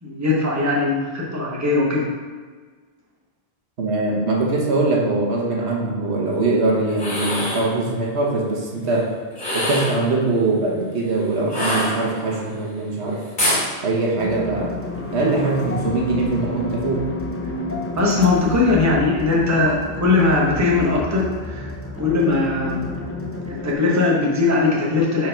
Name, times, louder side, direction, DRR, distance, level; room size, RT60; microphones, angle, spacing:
voice 1, 0.0-2.1 17.9-22.9 23.5-25.3, left 3 dB, 15° right, -4 dB, 1.0 m, -20 dB
voice 2, 3.8-9.1 9.5-13.2 13.8-14.7 15.1-17.0, right 2 dB, 75° right, -2 dB, 1.3 m, -22 dB
sound 1, 6.9-7.7 9.3-10.0 11.5-12.4 13.4-13.7, left 1 dB, 55° left, 2.4 m, -23 dB
sound 2, 14.2-23.7, left 2 dB, 15° left, 0.5 m, -31 dB
5.1 x 4.5 x 5.0 m, 1.5 s
omnidirectional pair, 1.1 m